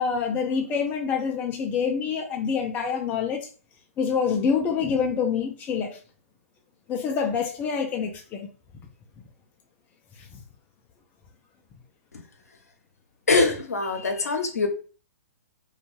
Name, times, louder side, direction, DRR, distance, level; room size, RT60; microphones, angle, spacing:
voice 1, 0.0-3.5 4.0-6.0 6.9-8.5 10.2-10.4, left 6 dB, 20° left, 0.4 m, -26 dB
voice 2, 13.3-14.7, left 3 dB, 80° left, 0.7 m, -23 dB
2.5 x 2.3 x 3.0 m
hypercardioid pair, 125°, 8 cm